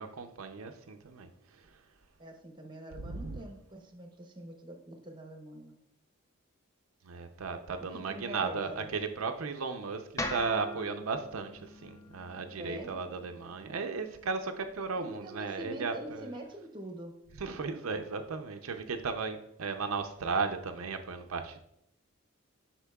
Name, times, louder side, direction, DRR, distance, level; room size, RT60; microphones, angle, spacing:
voice 1, 0.0-1.7 3.0-3.4 7.0-16.3 17.4-21.6, right 4 dB, 85° right, 6 dB, 0.5 m, -35 dB
voice 2, 2.2-5.8 7.9-8.9 12.6-12.9 15.0-17.1, right 1 dB, 20° right, 3 dB, 0.8 m, -44 dB
sound 1, 10.2-14.3, left 1 dB, 15° left, 0.4 m, -42 dB
8.1 x 6.0 x 2.3 m, 0.75 s
head